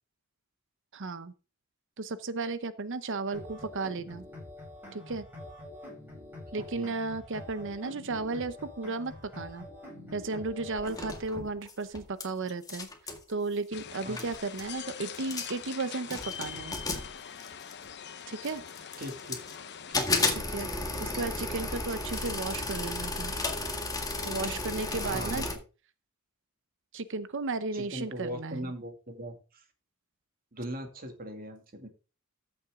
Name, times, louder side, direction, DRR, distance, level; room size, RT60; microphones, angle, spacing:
voice 1, 0.9-1.3 2.0-4.3 4.9-5.3 6.5-9.7 10.1-12.9 13.3-16.8 18.3-18.6 20.3-20.7 21.0-23.3 24.2-25.5 26.9-28.7, right 3 dB, 60° right, 13 dB, 0.8 m, -34 dB
sound 1, 3.3-11.3, left 1 dB, 10° right, 7.2 m, -46 dB
sound 2, 10.8-12.2 12.5-13.2 13.9-14.0 14.2-14.7 15.1-15.7 16.1-17.9 18.4-19.6 19.9-25.6, left 2 dB, 15° left, 1.8 m, -33 dB
sound 3, 13.7-20.1, left 8 dB, 55° left, 1.0 m, -43 dB
voice 2, 19.0-19.4 19.9-20.1 25.0-25.6 27.7-29.6 30.5-31.9, equal, 45° right, 5 dB, 2.3 m, -39 dB
14.0 x 7.2 x 3.7 m, 0.33 s
head